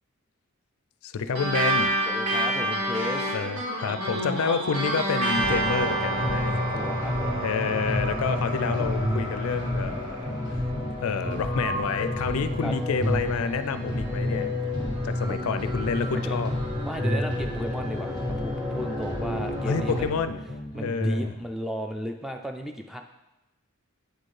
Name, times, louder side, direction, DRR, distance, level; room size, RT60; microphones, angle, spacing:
voice 1, 1.0-1.9 3.3-6.6 7.4-10.4 11.0-14.5 15.0-16.5 19.7-20.4 20.8-21.3, left 5 dB, 75° left, 11 dB, 0.4 m, -29 dB
sound 1, 1.3-10.2, right 1 dB, 90° right, 1.8 m, -29 dB
voice 2, 2.1-3.3 6.7-7.3 12.6-12.7 16.2-16.4 16.9-20.2 20.7-23.0, equal, ahead, 4 dB, 0.3 m, -34 dB
sound 2, 5.3-20.1, left 1 dB, 20° right, 0.9 m, -30 dB
sound 3, 5.5-7.0 7.2-11.0 11.2-15.0 15.2-19.0 19.2-21.4, equal, 40° right, 1.5 m, -34 dB
7.9 x 4.3 x 3.2 m, 0.95 s
head